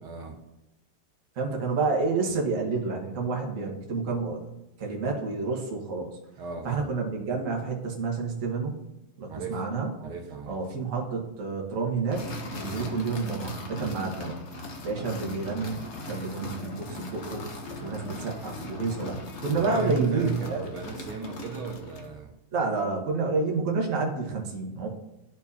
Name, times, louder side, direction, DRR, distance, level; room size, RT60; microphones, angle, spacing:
voice 1, 0.0-0.4 6.4-6.9 9.3-9.6 10.0-10.6 12.6-13.0 13.8-14.1 17.8-18.1 19.6-22.3, right 5 dB, 75° right, 1 dB, 1.7 m, -35 dB
voice 2, 1.4-4.4 4.8-6.2 6.6-8.8 9.2-9.9 10.5-14.4 14.8-17.4 17.8-20.6 22.5-24.9, right 4 dB, 40° right, 0 dB, 1.4 m, -29 dB
sound 1, 12.1-22.1, left 2 dB, 55° left, 0.8 m, -39 dB
12.5 x 4.5 x 2.8 m, 0.91 s
omnidirectional pair, 2.4 m